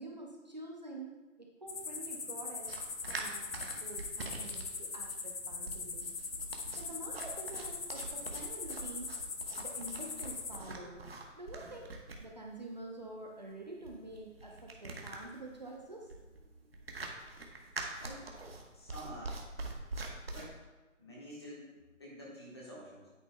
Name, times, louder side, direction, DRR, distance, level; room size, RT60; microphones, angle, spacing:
voice 1, 0.0-2.7 3.1-6.1 6.8-9.1 9.6-11.0 11.4-11.9 12.2-16.1, right 2 dB, 35° right, -1 dB, 0.8 m, -47 dB
sound 1, 1.7-10.6, left 4 dB, 85° left, 1.1 m, -41 dB
sound 2, 2.7-20.5, right 3 dB, 50° right, 1.1 m, -45 dB
voice 2, 18.0-18.3 18.7-19.5 20.3-20.6 21.0-23.1, equal, 20° left, -5 dB, 1.3 m, -49 dB
9.2 x 9.0 x 2.2 m, 1.2 s
hypercardioid pair, 175°, 38 cm